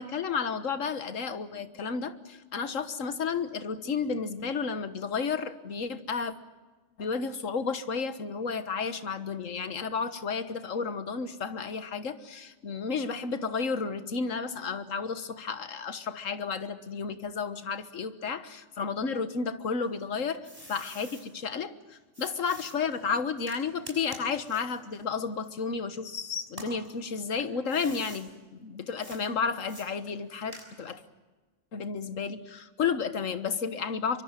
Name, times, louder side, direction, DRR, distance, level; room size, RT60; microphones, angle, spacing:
voice 1, 0.0-6.3 7.0-21.7 22.2-31.0 31.7-34.2, left 5 dB, 85° left, 11 dB, 1.7 m, -32 dB
sound 1, 19.8-21.2 22.1-26.0 26.5-28.2 29.0-29.2 29.7-31.0, right 1 dB, 25° right, 5.9 m, -47 dB
24.5 x 24.0 x 7.5 m, 1.3 s
omnidirectional pair, 1.3 m